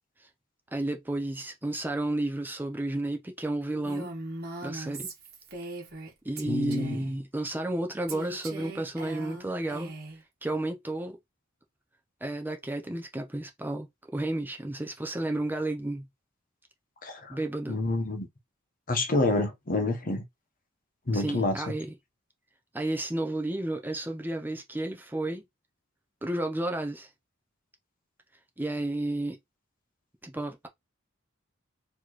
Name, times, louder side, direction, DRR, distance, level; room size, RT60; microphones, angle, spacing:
voice 1, 0.7-4.1 4.6-5.1 6.2-9.9 10.4-11.2 12.2-13.9 14.1-16.0 17.3-17.8 21.1-21.9 22.7-25.4 26.2-27.1 28.6-29.4 30.2-30.7, right 1 dB, 10° right, 0.6 m, -32 dB
Female speech woman speaking, 3.8-6.1 6.4-7.1 8.1-10.2, right 2 dB, 50° right, 1.4 m, -40 dB
voice 2, 6.4-7.0 17.0-17.4 17.7-18.3 18.9-20.2 21.1-21.6, left 2 dB, 40° left, 1.0 m, -28 dB
4.4 x 2.9 x 3.0 m
head